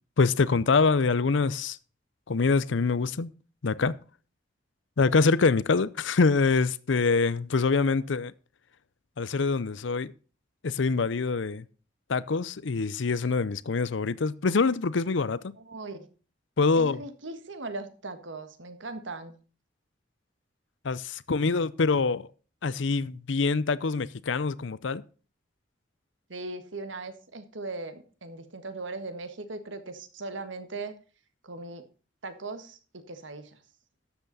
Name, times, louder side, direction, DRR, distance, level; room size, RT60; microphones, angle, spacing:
voice 1, 0.2-1.8 2.3-3.3 3.6-4.0 5.0-8.3 9.2-10.1 10.6-11.7 12.1-15.5 16.6-17.0 20.8-22.3 22.6-25.0, left 4 dB, 85° left, 0.6 m, -25 dB
voice 2, 15.6-16.1 16.8-19.3 26.3-30.9 31.4-31.8 32.2-33.6, right 3 dB, 90° right, 1.6 m, -39 dB
12.5 x 8.1 x 4.1 m
head